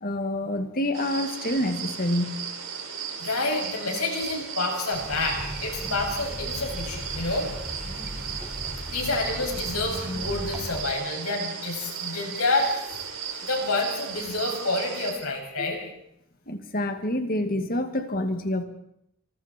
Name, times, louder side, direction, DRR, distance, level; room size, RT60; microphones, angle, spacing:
voice 1, 0.0-2.4 16.5-18.6, left 1 dB, 40° left, 7 dB, 2.2 m, -27 dB
sound 1, 0.9-15.1, right 7 dB, 75° right, 4.8 m, -36 dB
voice 2, 3.2-7.5 8.9-13.0 13.4-15.8, left 2 dB, 80° left, 1 dB, 7.2 m, -28 dB
sound 2, 4.9-10.8, equal, 5° right, 5.9 m, -37 dB
27.5 x 26.5 x 4.5 m, 0.75 s
head